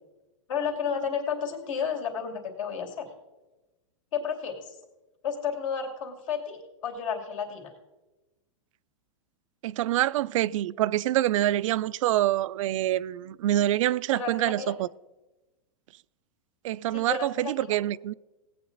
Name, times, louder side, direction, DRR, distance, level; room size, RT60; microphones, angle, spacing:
voice 1, 0.5-3.1 4.1-4.8 5.2-7.7 14.1-14.8 16.9-17.8, left 6 dB, 70° left, 2.9 m, -32 dB
voice 2, 9.6-14.9 16.6-18.1, right 14 dB, 75° right, 0.4 m, -26 dB
17.5 x 8.6 x 4.0 m
hypercardioid pair, 130°, 17 cm